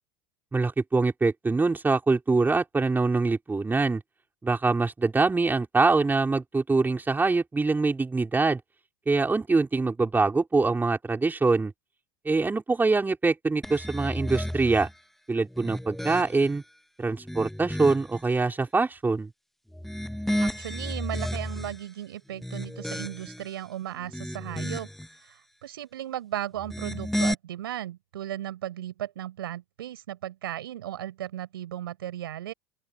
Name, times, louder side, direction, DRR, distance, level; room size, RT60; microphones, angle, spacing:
voice 1, 0.5-4.0 4.4-8.6 9.1-11.7 12.2-14.9 15.3-16.6 17.0-19.3, right 3 dB, 15° right, 4.8 m, -24 dB
sound 1, 13.6-14.9 15.5-16.6 17.1-18.2 19.7-21.8 22.3-23.5 24.0-25.1 26.6-27.3, equal, ahead, 1.2 m, -32 dB
voice 2, 20.4-24.9 25.6-32.5, right 12 dB, 75° right, 6.9 m, -36 dB
open air
hypercardioid pair, 80°, 12 cm